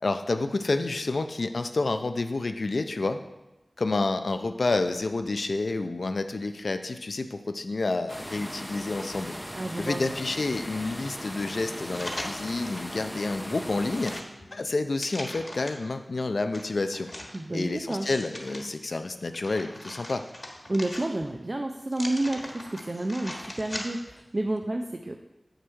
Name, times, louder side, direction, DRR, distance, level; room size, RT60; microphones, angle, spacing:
voice 1, 0.0-3.2 3.8-9.3 9.8-14.2 14.5-17.1 17.5-20.2, left 3 dB, 80° left, 8 dB, 0.5 m, -29 dB
sound 1, 8.1-14.2, equal, 5° left, 0.6 m, -38 dB
voice 2, 9.5-10.0 17.3-18.1 20.7-25.2, right 1 dB, 45° right, 3 dB, 0.5 m, -30 dB
sound 2, 11.8-12.9 13.4-15.9 16.5-18.6 19.1-21.4 21.9-24.2 24.6-24.7, left 1 dB, 35° left, 1.4 m, -40 dB
7.8 x 6.6 x 4.5 m, 0.99 s
wide cardioid pair, 70°, 0 cm